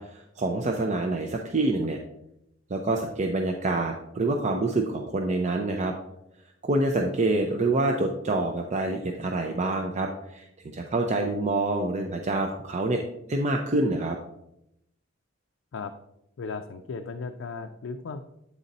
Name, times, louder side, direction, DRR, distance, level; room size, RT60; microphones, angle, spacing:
voice 1, 0.0-2.0 2.7-5.9 6.6-13.0 13.3-14.2, right 2 dB, 35° right, 2 dB, 0.5 m, -26 dB
voice 2, 16.4-18.2, left 4 dB, 70° left, 5 dB, 0.4 m, -36 dB
8.3 x 4.0 x 4.1 m, 0.81 s
head